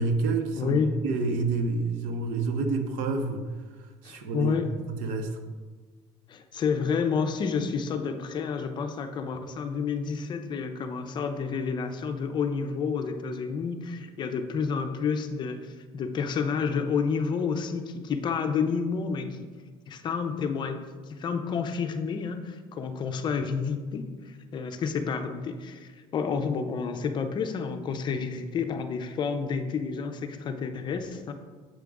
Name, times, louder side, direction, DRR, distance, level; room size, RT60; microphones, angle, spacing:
voice 1, 0.0-0.8 1.0-3.4 4.0-4.5 4.9-5.3, right 3 dB, 80° right, 6 dB, 0.8 m, -28 dB
voice 2, 0.6-1.0 4.0-4.7 6.3-19.5 19.9-31.3, left 5 dB, 35° left, 7 dB, 0.5 m, -30 dB
7.5 x 5.0 x 3.6 m, 1.5 s
cardioid pair, 140°, 13 cm